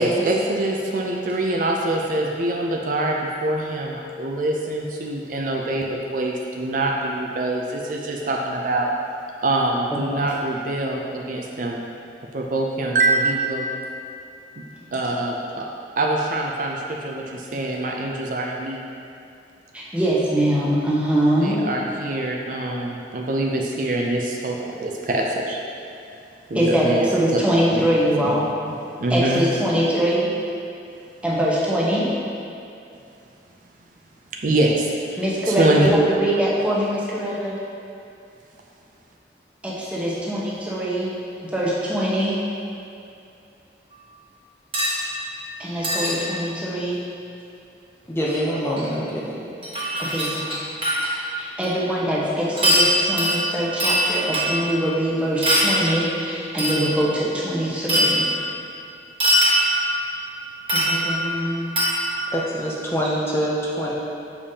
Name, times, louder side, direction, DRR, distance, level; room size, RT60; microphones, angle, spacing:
voice 1, 0.0-8.9 9.4-11.8 12.3-13.7 14.6-14.7 14.9-15.7 16.0-18.8 21.4-25.6 26.5-27.4 27.7-27.8 28.2-28.4 28.7-28.8 29.0-29.4 34.4-35.2 35.5-35.9, right 2 dB, 50° right, 0 dB, 0.4 m, -24 dB
voice 2, 9.9-10.3 19.7-21.6 26.5-28.5 29.1-30.3 31.2-32.1 35.2-37.5 39.6-41.1 41.4-42.4 45.6-47.0 49.0-49.1 50.0-50.6 51.4-58.3 60.7-61.7, equal, 5° right, -7 dB, 0.9 m, -23 dB
sound 1, 44.7-45.0 45.8-46.1 48.3-48.4 48.8-48.9 49.6-51.2 51.6-51.7 52.6-54.8 55.4-55.8 56.6-57.0 57.9-58.4 59.2-60.0 60.7-61.3 61.8-62.3 63.0-63.1, equal, 30° right, 1.2 m, -21 dB
voice 3, 48.1-49.5 62.3-63.9, equal, 15° left, -5 dB, 0.5 m, -25 dB
6.9 x 5.0 x 2.8 m, 2.7 s
head